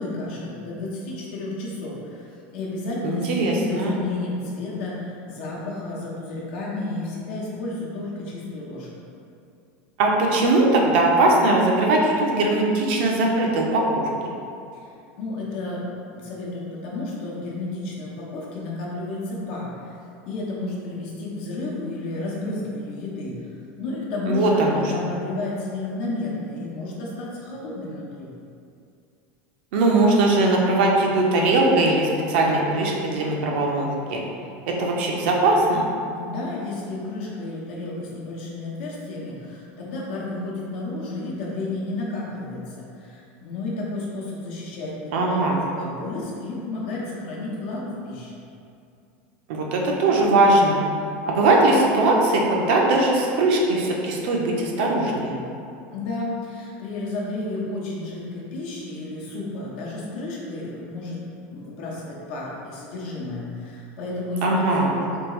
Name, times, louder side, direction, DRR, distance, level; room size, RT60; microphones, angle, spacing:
voice 1, 0.0-9.1 14.7-14.9 15.2-15.8 16.1-20.0 20.2-28.3 36.1-48.3 55.9-61.2 61.5-65.3, left 2 dB, 65° left, -4 dB, 0.8 m, -32 dB
voice 2, 3.0-3.9 10.0-14.1 24.3-24.8 29.7-34.2 34.7-35.8 45.1-45.6 49.5-50.8 51.3-55.4 64.4-64.9, right 2 dB, 65° right, -1 dB, 0.5 m, -20 dB
3.5 x 2.4 x 3.0 m, 2.5 s
supercardioid pair, 165°, 6 cm